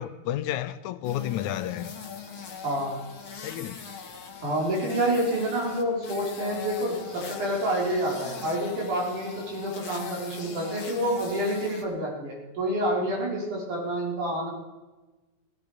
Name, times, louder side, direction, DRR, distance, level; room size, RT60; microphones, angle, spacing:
voice 1, 0.0-1.9 3.4-3.9, left 12 dB, 80° left, 2.1 m, -31 dB
sound 1, 1.0-11.8, left 6 dB, 45° left, 2.4 m, -40 dB
voice 2, 2.6-3.0 4.4-14.5, right 1 dB, 80° right, 6.1 m, -28 dB
16.5 x 15.0 x 5.0 m
omnidirectional pair, 3.5 m